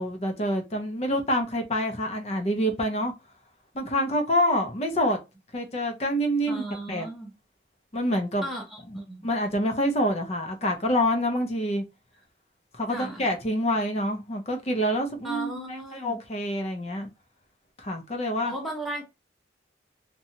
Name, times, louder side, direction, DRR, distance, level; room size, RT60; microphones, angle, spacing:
voice 1, 0.0-3.1 3.7-5.2 5.5-7.1 7.9-8.5 9.2-11.8 12.7-17.1 17.8-18.5, equal, 35° left, 0.5 m, -27 dB
voice 2, 6.5-7.3 8.4-9.3 12.9-13.3 15.2-16.2 18.4-19.0, right 1 dB, ahead, 0.7 m, -36 dB
2.7 x 2.2 x 2.8 m
head